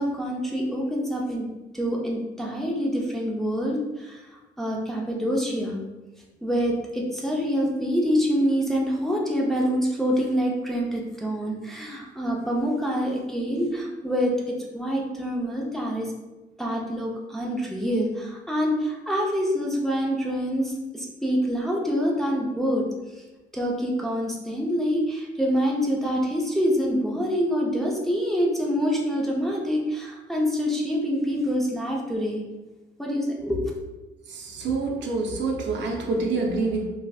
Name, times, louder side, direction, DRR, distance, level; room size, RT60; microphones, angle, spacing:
voice 1, 0.0-1.5 1.7-4.2 4.6-5.8 6.4-16.1 16.6-22.8 23.1-23.2 23.5-32.4 33.0-33.7, equal, ahead, -3 dB, 0.6 m, -26 dB
voice 2, 34.3-36.9, right 3 dB, 65° right, 1 dB, 0.5 m, -26 dB
3.2 x 2.5 x 2.3 m, 1.1 s
cardioid pair, 90°, 20 cm